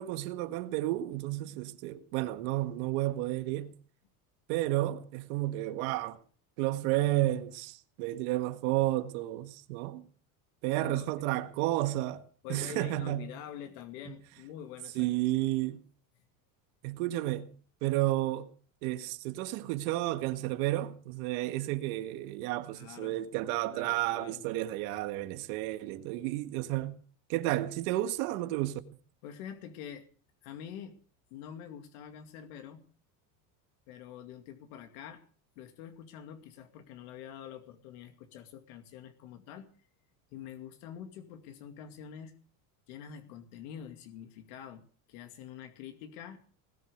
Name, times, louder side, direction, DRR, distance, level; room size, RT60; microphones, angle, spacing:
voice 1, 0.0-3.7 4.5-6.2 6.6-10.1 10.6-12.2 12.5-13.3 14.1-14.2 15.0-15.8 16.8-17.5 17.8-18.5 18.8-27.0 27.3-28.8, right 16 dB, 75° right, 1.8 m, -31 dB
voice 2, 10.7-11.1 12.4-15.1 15.4-15.5 22.7-23.2 23.6-24.4 29.2-30.1 30.4-30.9 31.3-32.8 33.9-35.2 35.6-39.7 40.3-42.3 42.9-44.8 45.1-46.4, left 9 dB, 75° left, 2.4 m, -46 dB
20.0 x 8.4 x 8.0 m
cardioid pair, 145°, 43 cm